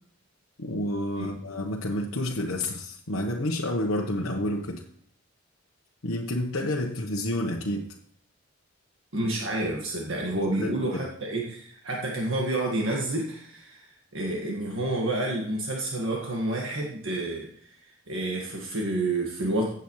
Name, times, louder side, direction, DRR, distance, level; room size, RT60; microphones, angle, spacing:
voice 1, 0.6-4.8 6.0-7.9 10.6-11.1, left 1 dB, 65° left, -1 dB, 1.1 m, -29 dB
voice 2, 9.1-17.8 18.1-19.7, right 2 dB, 65° right, -2 dB, 1.8 m, -29 dB
15.5 x 8.1 x 3.2 m, 0.64 s
head